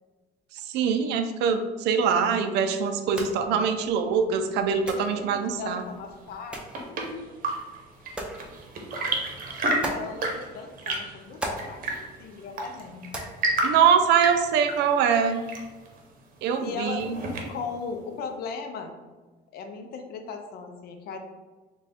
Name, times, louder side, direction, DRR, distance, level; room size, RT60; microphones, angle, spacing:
voice 1, 0.5-5.8 13.6-15.4 16.4-17.2, right 7 dB, 85° right, 7 dB, 0.4 m, -23 dB
sound 1, 3.0-14.5, right 1 dB, 5° right, 0.6 m, -41 dB
voice 2, 4.9-7.0 9.6-13.1 16.6-17.0 17.5-19.0 19.5-21.2, left 5 dB, 65° left, 5 dB, 0.5 m, -38 dB
Chirp tweet / Engine / Tap, 6.3-17.8, right 2 dB, 55° right, 0.8 m, -32 dB
3.3 x 2.3 x 4.1 m, 1.3 s
cardioid pair, 110°, 17 cm